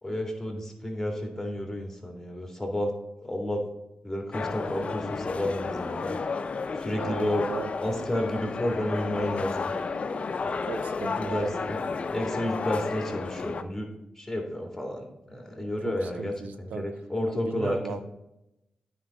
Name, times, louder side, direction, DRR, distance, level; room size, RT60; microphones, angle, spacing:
voice 1, 0.0-2.9 3.2-3.6 4.0-6.2 6.8-7.5 7.8-9.7 11.2-11.8 12.1-13.9 14.2-16.3 16.6-18.0, left 1 dB, 10° left, 2 dB, 2.1 m, -31 dB
sound 1, 4.3-13.6, left 4 dB, 50° left, 0.6 m, -32 dB
voice 2, 6.9-7.7 10.6-11.6 15.6-16.9 17.3-18.0, right 6 dB, 85° right, 8 dB, 0.5 m, -37 dB
9.3 x 4.9 x 4.1 m, 0.89 s
cardioid pair, 60°, 3 cm